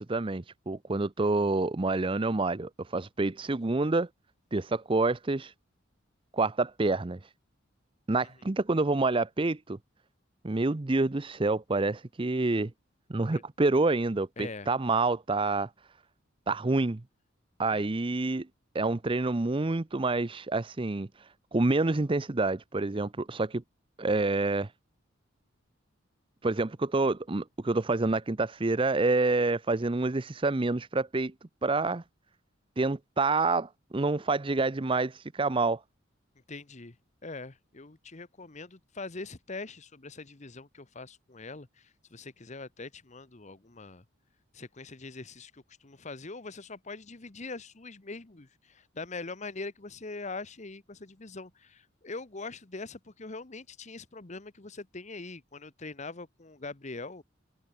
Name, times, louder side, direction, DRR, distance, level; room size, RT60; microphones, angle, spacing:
voice 1, 0.0-4.1 4.5-5.5 6.3-7.3 8.1-9.8 10.4-12.7 13.1-15.7 16.5-17.0 17.6-18.5 18.7-23.6 24.0-24.7 26.4-31.3 31.6-32.0 32.8-35.8, right 3 dB, 25° right, 0.6 m, -28 dB
voice 2, 14.4-14.7 17.7-17.8 36.3-37.0 37.2-44.0 44.5-57.2, left 3 dB, 35° left, 1.1 m, -42 dB
open air
head